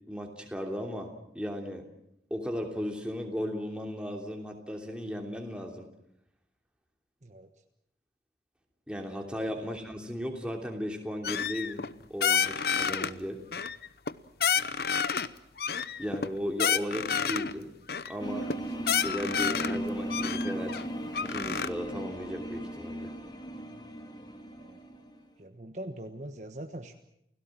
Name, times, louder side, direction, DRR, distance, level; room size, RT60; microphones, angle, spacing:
voice 1, 0.1-1.8 2.3-5.9 8.9-13.4 16.0-17.7 18.1-18.5 18.8-20.8 21.2-23.1, equal, 5° right, 2 dB, 3.0 m, -36 dB
sound 1, 11.2-11.9 12.2-13.1 13.5-14.1 14.4-15.3 15.6-17.5 17.9-18.1 18.5-18.6 18.8-19.8 20.1-21.7, left 7 dB, 60° left, 0.8 m, -29 dB
sound 2, 18.2-25.2, right 1 dB, 25° left, 2.3 m, -37 dB
voice 2, 25.4-26.9, right 1 dB, 40° right, 6 dB, 1.3 m, -42 dB
30.0 x 17.0 x 7.5 m, 0.78 s
head